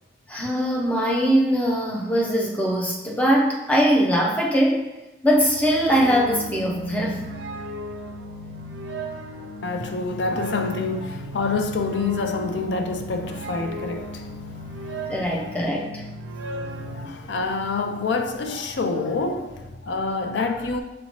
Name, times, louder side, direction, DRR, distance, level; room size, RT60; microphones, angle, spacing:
voice 1, 0.3-4.9 5.2-7.3 15.1-16.1, equal, 10° left, 0.5 m, -21 dB
sound 1, 5.3-17.1, equal, 90° right, 0.4 m, -35 dB
voice 2, 9.6-15.1 15.6-15.8 16.4-20.8, left 3 dB, 85° left, 0.4 m, -27 dB
6.3 x 2.8 x 2.9 m
head